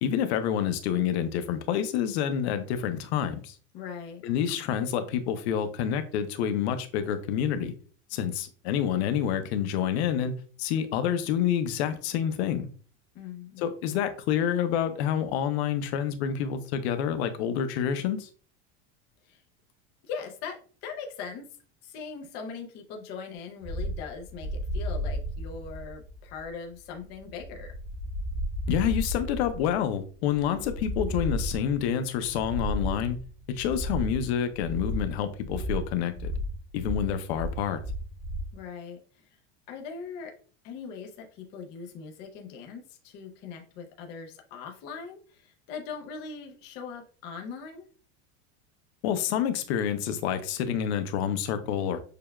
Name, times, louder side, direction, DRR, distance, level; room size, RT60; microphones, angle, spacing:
voice 1, 0.0-3.6 4.2-7.7 8.1-12.7 13.6-18.3 28.7-33.2 33.5-36.3 36.7-37.8 49.0-52.0, left 9 dB, 80° left, 0.6 m, -28 dB
voice 2, 3.7-4.2 13.1-13.6 19.2-19.4 20.0-21.5 21.8-27.7 38.5-39.0 39.7-40.3 40.6-47.8, left 5 dB, 30° left, 0.5 m, -40 dB
sound 1, 23.6-38.5, equal, 10° right, 0.8 m, -34 dB
6.5 x 2.2 x 2.2 m
cardioid pair, 180°, 32 cm